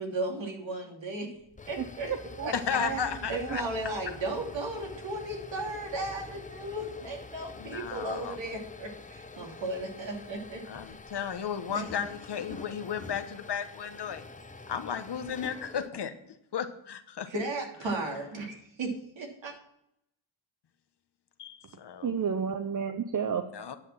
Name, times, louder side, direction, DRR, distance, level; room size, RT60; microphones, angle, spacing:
voice 1, 0.0-1.4 1.7-2.1 2.4-2.5 2.9-10.6 17.3-19.5, right 2 dB, 65° right, 1 dB, 2.9 m, -35 dB
sound 1, 1.4-15.9, left 3 dB, 15° left, 0.7 m, -46 dB
voice 2, 1.8-2.5 2.8-3.6 22.0-23.5, right 7 dB, 40° right, 8 dB, 0.7 m, -32 dB
voice 3, 2.5-3.6 7.6-8.4 10.6-14.3 14.7-16.2 16.5-17.3 21.4-22.1 23.5-23.8, left 7 dB, 55° left, 9 dB, 1.0 m, -34 dB
10.0 x 6.1 x 7.3 m, 0.76 s
wide cardioid pair, 110°, 48 cm